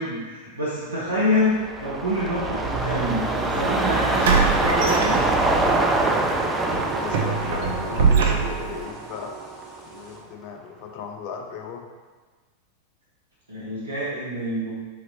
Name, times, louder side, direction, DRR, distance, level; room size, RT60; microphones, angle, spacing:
voice 1, 0.0-5.4 13.5-14.7, left 1 dB, 80° right, -8 dB, 0.9 m, -27 dB
sound 1, 1.4-9.8 10.2-10.3, right 2 dB, 10° right, 0.4 m, -25 dB
sound 2, 3.1-3.3 4.2-5.7 6.1-6.3 6.7-8.8, right 5 dB, 55° right, 0.6 m, -23 dB
sound 3, 3.9-10.2, right 6 dB, 5° left, 1.2 m, -39 dB
voice 2, 6.7-9.3 9.8-11.9, left 6 dB, 45° left, 4 dB, 0.5 m, -36 dB
4.1 x 3.9 x 2.8 m, 1.3 s
figure-of-eight pair, 90°, 0 cm